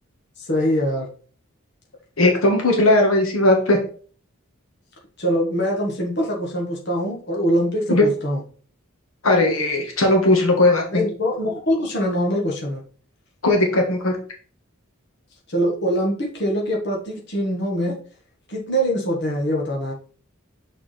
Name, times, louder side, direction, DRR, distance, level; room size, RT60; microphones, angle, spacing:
voice 1, 0.4-1.1 5.2-8.4 10.9-12.8 15.5-18.0 18.5-19.9, equal, 50° left, -1 dB, 1.6 m, -23 dB
voice 2, 2.2-3.8 7.9-8.0 9.2-11.0 13.4-14.2, left 2 dB, 80° left, 1 dB, 1.5 m, -17 dB
6.3 x 4.9 x 3.4 m, 0.42 s
head